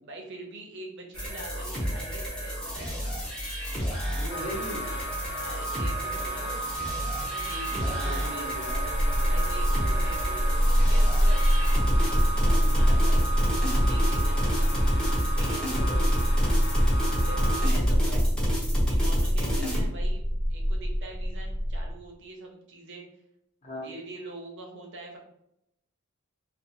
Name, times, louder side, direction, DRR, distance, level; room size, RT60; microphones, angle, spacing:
voice 1, 0.0-3.1 5.4-6.8 7.2-8.5 9.3-13.2 13.5-14.7 15.4-15.7 17.2-18.2 18.9-23.1 23.8-25.2, right 2 dB, 55° right, 0 dB, 0.7 m, -44 dB
sound 1, 1.1-19.8, equal, 5° left, 0.7 m, -31 dB
voice 2, 4.2-4.8 7.8-9.3 12.5-12.8 15.7-16.0 19.5-19.8 23.6-23.8, left 1 dB, 35° left, -4 dB, 0.9 m, -39 dB
sound 2, 4.3-17.7, right 2 dB, 55° left, 0.4 m, -35 dB
sound 3, 8.7-21.9, equal, 90° left, 1.1 m, -25 dB
2.5 x 2.4 x 2.7 m, 0.80 s
head